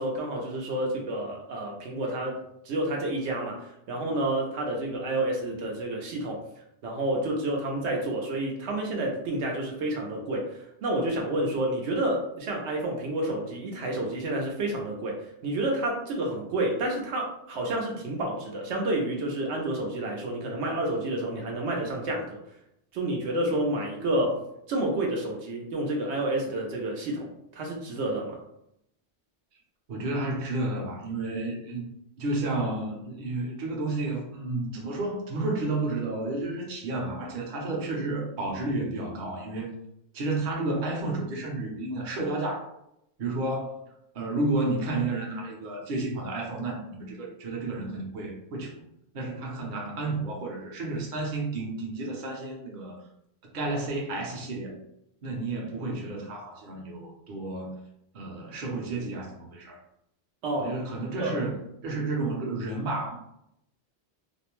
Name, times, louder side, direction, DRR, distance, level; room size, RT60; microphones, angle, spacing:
voice 1, 0.0-2.4 2.6-6.4 6.8-22.4 22.9-24.4 24.7-28.4 60.4-60.7 61.2-61.3 61.9-62.0, right 1 dB, 80° right, 0 dB, 0.9 m, -29 dB
voice 2, 29.9-31.9 32.2-39.7 40.1-42.7 43.2-43.8 44.1-48.7 49.1-53.0 53.5-54.8 55.2-57.7 58.1-59.8 60.6-61.6 61.8-63.2, right 2 dB, 50° right, -2 dB, 0.8 m, -31 dB
2.5 x 2.0 x 2.9 m, 0.78 s
omnidirectional pair, 1.1 m